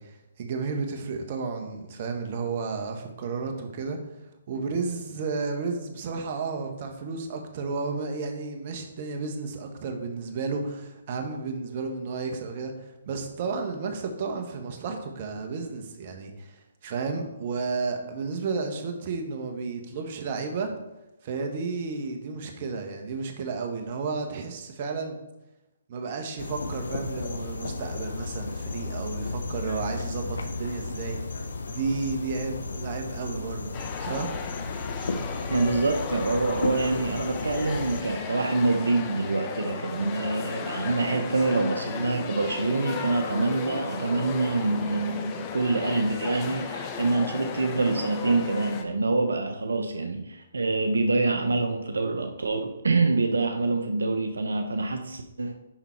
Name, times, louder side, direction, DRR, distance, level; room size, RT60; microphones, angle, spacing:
voice 1, 0.0-4.0 4.5-20.7 21.2-25.2 25.9-31.2 31.7-34.3, right 4 dB, 45° right, 4 dB, 1.4 m, -32 dB
sound 1, 26.4-38.0, left 3 dB, 80° left, 0.9 m, -34 dB
sound 2, 33.7-48.8, left 6 dB, 30° left, 0.9 m, -36 dB
voice 2, 35.5-55.5, right 3 dB, 85° right, 5 dB, 0.8 m, -26 dB
10.0 x 4.0 x 4.6 m, 0.96 s
hypercardioid pair, 145°, 0 cm